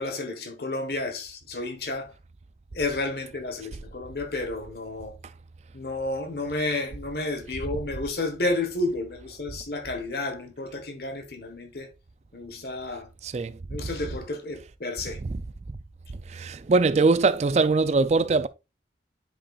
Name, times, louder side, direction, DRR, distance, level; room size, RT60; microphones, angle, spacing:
voice 1, 0.0-2.1 2.7-5.2 5.7-11.9 12.3-13.1 13.7-15.2, left 2 dB, 60° left, 1.3 m, -31 dB
voice 2, 13.2-13.6 15.2-15.4 16.3-18.5, right 3 dB, 35° right, 0.3 m, -22 dB
9.9 x 5.2 x 2.4 m
head